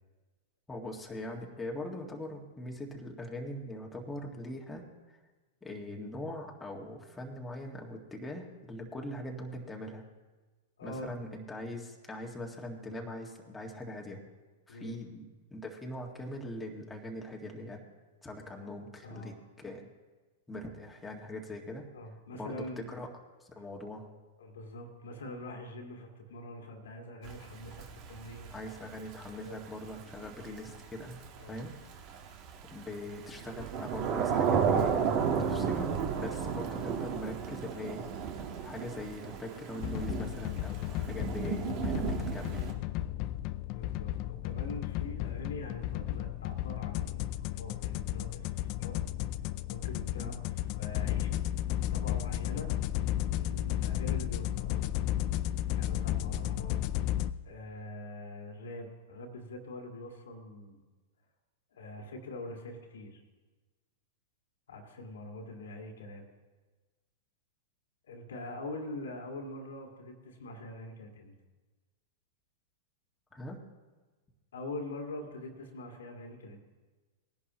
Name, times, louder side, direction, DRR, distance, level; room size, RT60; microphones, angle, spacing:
voice 1, 0.7-4.8 5.1-5.2 5.6-10.0 10.8-14.2 14.7-15.3 15.5-17.8 18.2-19.9 20.5-21.9 22.3-23.1 23.4-24.1 28.5-31.7 32.7-35.0 35.4-42.6 50.2-50.3 73.3-73.6, left 1 dB, 10° left, -1 dB, 1.9 m, -42 dB
voice 2, 10.8-11.4 14.7-15.0 19.0-19.4 21.9-22.9 24.4-28.6 29.3-29.6 31.4-31.6 40.8-41.1 43.7-49.0 49.7-50.4 50.8-51.4 51.9-52.7 53.3-54.9 55.8-56.8 57.4-60.8 61.7-63.2 64.7-66.3 68.1-71.3 74.5-76.7, left 1 dB, 75° left, 2 dB, 2.0 m, -44 dB
Thunder / Rain, 27.2-42.7, right 7 dB, 45° right, 1.6 m, -33 dB
sound 1, 39.8-57.3, left 13 dB, 45° left, 0.4 m, -33 dB
20.0 x 11.0 x 3.1 m, 1.3 s
hypercardioid pair, 105°, 0 cm